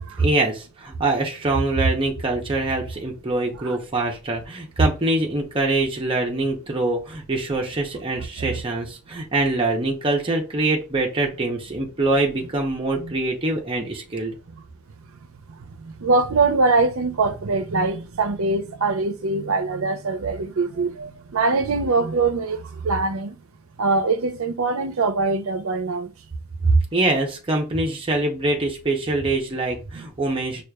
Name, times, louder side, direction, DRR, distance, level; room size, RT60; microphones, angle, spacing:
voice 1, 0.2-14.4 26.6-30.6, right 2 dB, 25° right, 0.7 m, -23 dB
voice 2, 3.4-3.8 13.0-13.1 16.0-23.4 23.8-26.1 30.0-30.1, right 3 dB, 80° right, 0.6 m, -23 dB
6.2 x 2.4 x 2.3 m
head